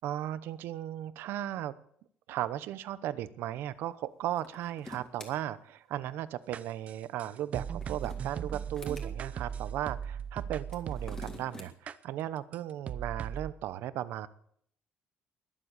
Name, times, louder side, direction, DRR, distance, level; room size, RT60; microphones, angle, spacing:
voice 1, 0.0-1.7 2.3-14.3, right 12 dB, 75° right, 15 dB, 0.9 m, -36 dB
sound 1, 4.3-5.3 7.6-9.1 10.6-11.7, left 2 dB, 15° left, 2.1 m, -47 dB
sound 2, 6.5-11.4 11.9-12.0 12.5-12.6 12.9-13.5, right 8 dB, 40° right, 0.6 m, -38 dB
21.5 x 7.6 x 8.3 m, 0.67 s
cardioid pair, 170°, 4 cm